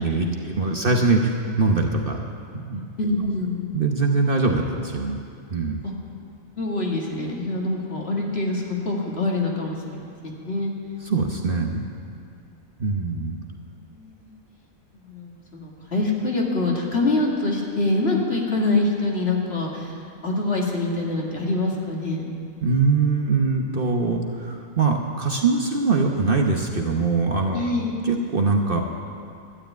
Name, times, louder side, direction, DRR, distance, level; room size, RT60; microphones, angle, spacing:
voice 1, 0.0-2.2 2.5-2.8 3.7-5.2 5.5-5.8 11.0-11.8 12.8-13.4 22.6-27.7 28.0-28.8, right 3 dB, 45° right, 1 dB, 1.1 m, -22 dB
voice 2, 3.0-3.8 5.8-5.9 6.6-10.7 12.5-12.6 13.9-14.3 15.0-22.2 27.5-27.9, left 2 dB, 45° left, -2 dB, 2.2 m, -25 dB
12.5 x 9.9 x 9.1 m, 2.4 s
omnidirectional pair, 1.4 m